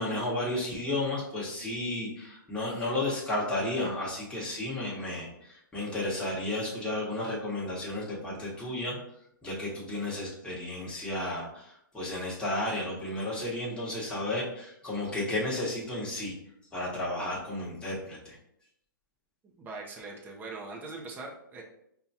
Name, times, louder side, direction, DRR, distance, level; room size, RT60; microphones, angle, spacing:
voice 1, 0.0-9.0 9.4-16.3 16.7-18.4, left 1 dB, 10° left, -5 dB, 1.2 m, -33 dB
voice 2, 19.4-21.6, right 3 dB, 15° right, -1 dB, 0.7 m, -41 dB
5.4 x 2.3 x 2.8 m, 0.76 s
hypercardioid pair, 130°, 11 cm